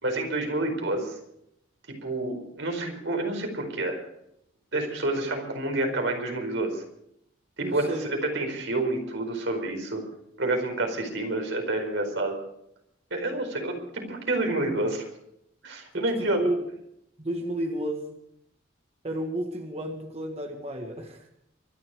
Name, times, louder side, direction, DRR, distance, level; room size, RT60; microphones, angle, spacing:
voice 1, 0.0-1.2 1.9-4.0 4.7-6.8 7.6-10.0 10.4-12.3 13.1-15.1 15.6-16.5, right 2 dB, 75° right, 3 dB, 4.7 m, -28 dB
voice 2, 7.6-8.1 15.9-16.6 17.2-18.2 19.0-21.3, right 1 dB, 30° right, 3 dB, 1.7 m, -32 dB
24.5 x 11.0 x 5.0 m, 0.75 s
head